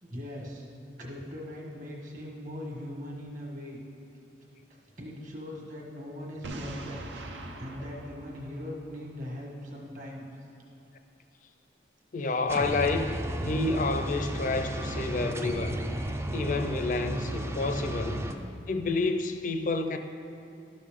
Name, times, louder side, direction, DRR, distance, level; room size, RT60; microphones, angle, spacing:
voice 1, 0.0-0.6 1.0-3.8 5.0-7.0 7.3-10.2 18.2-18.7, left 1 dB, 45° right, -2 dB, 1.5 m, -40 dB
Boom, 6.4-9.3, right 1 dB, 90° right, 0.8 m, -41 dB
voice 2, 12.1-13.1 13.4-15.8 16.3-18.3 18.7-20.0, left 3 dB, 45° left, 7 dB, 0.5 m, -29 dB
sound 1, 12.5-18.3, right 1 dB, 15° right, 0.3 m, -33 dB
12.0 x 6.4 x 3.7 m, 2.5 s
head